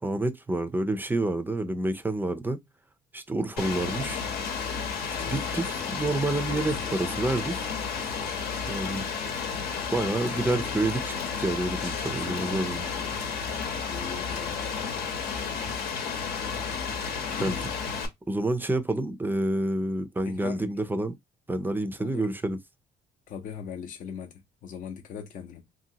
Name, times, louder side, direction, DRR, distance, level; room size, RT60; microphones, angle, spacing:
voice 1, 0.0-2.6 3.1-4.2 5.3-7.7 8.7-9.1 9.9-12.8 17.4-17.6 18.3-21.2 21.5-22.6, right 2 dB, 10° right, 0.4 m, -28 dB
Rain, 3.6-18.1, left 6 dB, 70° left, 0.9 m, -32 dB
voice 2, 5.1-5.4 6.7-7.0 12.2-13.2 13.9-14.7 17.4-17.6 20.2-20.7 22.0-22.3 23.3-25.7, left 7 dB, 50° left, 0.6 m, -40 dB
2.8 x 2.6 x 2.7 m
cardioid pair, 110°, 17 cm